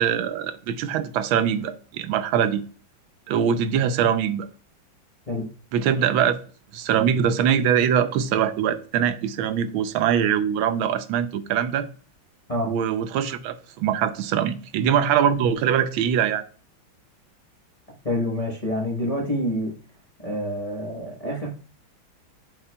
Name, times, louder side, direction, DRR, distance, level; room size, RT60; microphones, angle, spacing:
voice 1, 0.0-2.6 3.3-4.5 5.7-6.4 6.7-11.9 12.7-16.4, right 8 dB, 90° right, 1.4 m, -22 dB
voice 2, 18.0-19.7 20.2-21.5, equal, 30° left, 0.7 m, -27 dB
7.8 x 5.7 x 2.2 m
omnidirectional pair, 2.2 m